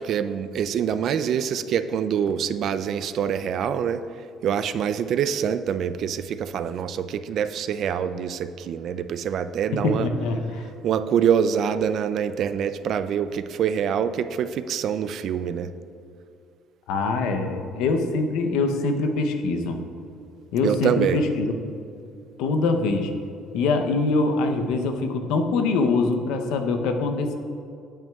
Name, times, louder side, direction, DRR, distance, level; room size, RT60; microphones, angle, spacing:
voice 1, 0.0-4.0 4.4-10.1 10.8-15.7 20.6-21.2, right 8 dB, 55° right, 12 dB, 0.3 m, -25 dB
voice 2, 9.7-10.7 16.9-19.8 20.5-21.5 22.4-23.1 23.5-27.3, left 3 dB, 90° left, 6 dB, 0.7 m, -24 dB
8.9 x 8.9 x 2.3 m, 2.6 s
cardioid pair, 145°, 0 cm